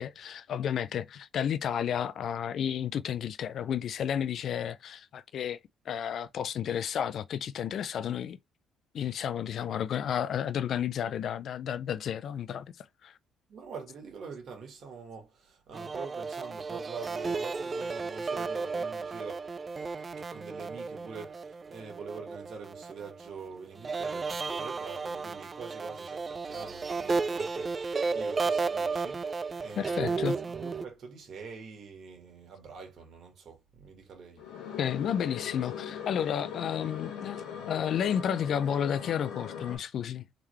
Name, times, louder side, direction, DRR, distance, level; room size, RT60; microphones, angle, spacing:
voice 1, 0.0-5.6 5.9-8.4 8.9-13.2 29.8-30.4 34.8-40.2, left 9 dB, 65° left, 0.3 m, -32 dB
voice 2, 13.5-19.4 20.2-34.4, right 5 dB, 60° right, 1.7 m, -45 dB
sound 1, 15.7-23.3 23.8-30.8, right 4 dB, 40° right, 0.3 m, -33 dB
sound 2, 34.4-39.8, left 8 dB, 80° left, 1.1 m, -40 dB
3.6 x 3.2 x 3.1 m
supercardioid pair, 60°, 0 cm